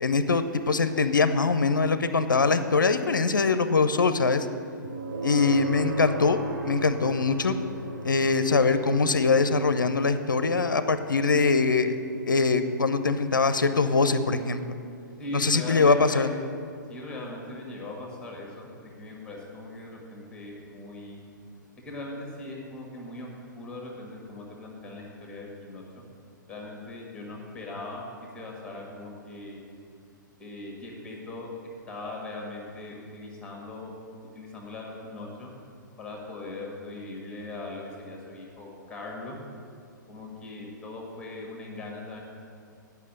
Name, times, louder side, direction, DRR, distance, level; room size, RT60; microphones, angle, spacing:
voice 1, 0.0-4.5 5.2-6.4 6.6-7.6 8.0-11.9 12.3-14.7 15.3-16.3, left 4 dB, 70° left, 11 dB, 0.5 m, -23 dB
sound 1, 4.8-19.8, right 2 dB, 70° right, 1.0 m, -40 dB
voice 2, 15.2-16.3 16.9-21.2 21.8-23.3 23.6-26.0 26.5-28.0 28.3-29.6 30.4-33.9 34.3-35.5 36.0-39.4 40.1-42.2, left 2 dB, 10° left, -1 dB, 1.5 m, -40 dB
9.2 x 5.6 x 7.6 m, 2.4 s
figure-of-eight pair, 115°, 11 cm